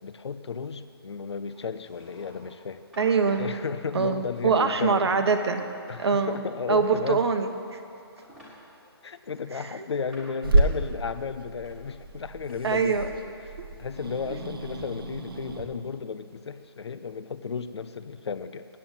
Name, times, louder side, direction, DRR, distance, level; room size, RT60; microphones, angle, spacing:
voice 1, 0.0-2.8 3.4-5.3 5.9-7.3 9.0-13.1 13.4-18.7, left 5 dB, 85° left, 12 dB, 0.7 m, -34 dB
sound 1, 1.8-2.6 2.9-3.5 4.4-5.0 5.3-6.0 7.2-7.9 8.2-8.5 9.4-10.4 11.7-12.5, equal, ahead, 1.4 m, -50 dB
voice 2, 3.0-3.5 3.9-5.7 6.0-6.4 6.7-7.8 9.5-9.7 12.6-13.1, right 5 dB, 75° right, 7 dB, 1.1 m, -24 dB
Growling / Hiss, 10.4-15.6, right 2 dB, 60° right, 1.2 m, -29 dB
8.6 x 7.9 x 8.9 m, 2.6 s
hypercardioid pair, 175°, 14 cm